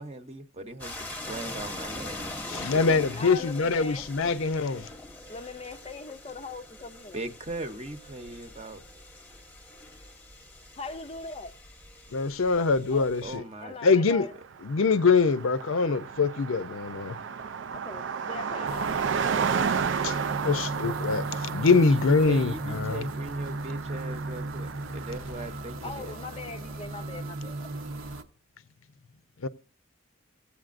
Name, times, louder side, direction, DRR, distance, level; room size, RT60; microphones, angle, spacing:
voice 1, 0.0-2.6 7.1-8.8 13.2-13.8 21.9-26.2, right 2 dB, 30° right, 0.8 m, -39 dB
sound 1, 0.8-13.4, left 1 dB, 10° left, 0.9 m, -42 dB
voice 2, 2.5-4.9 12.1-13.4 13.8-14.3 14.6-17.2 20.0-20.1 20.4-23.1 29.4-29.5, left 4 dB, 70° left, 0.6 m, -24 dB
voice 3, 3.1-4.0 5.3-7.2 10.8-11.5 12.9-13.1 13.6-14.3 17.7-18.9 25.8-27.7, left 3 dB, 30° left, 0.5 m, -40 dB
Car passing by, 14.2-14.3 14.5-25.5, right 6 dB, 60° right, 0.4 m, -33 dB
sound 2, 18.7-28.2, right 2 dB, 75° right, 0.9 m, -36 dB
16.0 x 8.4 x 2.5 m
head